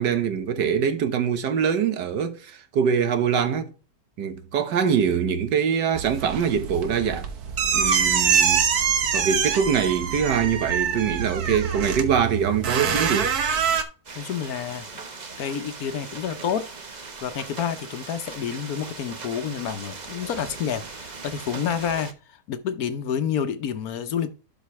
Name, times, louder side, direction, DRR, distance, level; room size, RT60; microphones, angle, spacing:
voice 1, 0.0-3.7 4.2-7.3 7.7-8.6 9.1-13.3, right 7 dB, 80° right, 1.7 m, -23 dB
sound 1, 5.9-13.8, right 7 dB, 65° right, 1.6 m, -24 dB
sound 2, 14.0-22.1, right 4 dB, 30° right, 1.0 m, -39 dB
voice 2, 14.1-14.9 15.4-16.7 17.2-24.3, left 8 dB, 65° left, 1.2 m, -29 dB
12.0 x 5.1 x 3.1 m
omnidirectional pair, 1.8 m